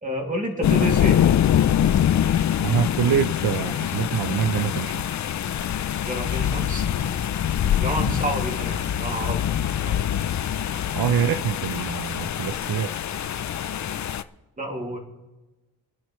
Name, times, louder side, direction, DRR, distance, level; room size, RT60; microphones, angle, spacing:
voice 1, 0.0-1.2 6.1-7.2 7.7-10.0 14.6-15.0, right 1 dB, 20° right, 1 dB, 2.5 m, -30 dB
sound 1, 0.6-14.2, left 10 dB, 50° left, 0.5 m, -24 dB
voice 2, 2.6-5.0 8.1-8.2 10.9-12.9, right 8 dB, 70° right, 10 dB, 0.6 m, -25 dB
28.0 x 10.0 x 3.1 m, 1.1 s
wide cardioid pair, 125°, 37 cm